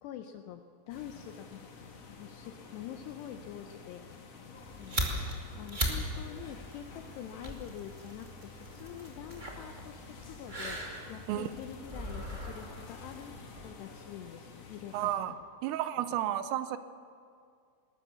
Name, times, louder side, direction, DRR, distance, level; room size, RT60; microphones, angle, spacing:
voice 1, 0.0-1.7 2.1-4.0 4.8-5.1 5.6-10.8 11.1-15.4 15.6-16.1, left 10 dB, 80° left, 6 dB, 2.5 m, -46 dB
sound 1, 0.9-15.2, left 4 dB, 50° left, 2.0 m, -50 dB
sound 2, 4.5-13.7, right 1 dB, 45° right, 0.6 m, -39 dB
voice 2, 14.9-15.3 15.6-16.8, right 12 dB, 85° right, 12 dB, 3.4 m, -32 dB
20.5 x 19.5 x 7.0 m, 2.3 s
omnidirectional pair, 5.7 m